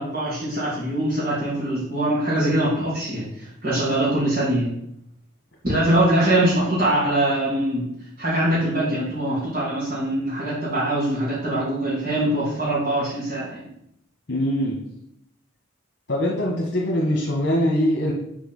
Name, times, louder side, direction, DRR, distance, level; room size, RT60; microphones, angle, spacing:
voice 1, 0.0-4.8 5.6-7.9 8.2-13.6, right 1 dB, 45° right, -11 dB, 2.9 m, -23 dB
voice 2, 14.3-14.8 16.1-18.1, equal, 60° left, -3 dB, 1.5 m, -22 dB
7.3 x 4.7 x 5.5 m, 0.77 s
head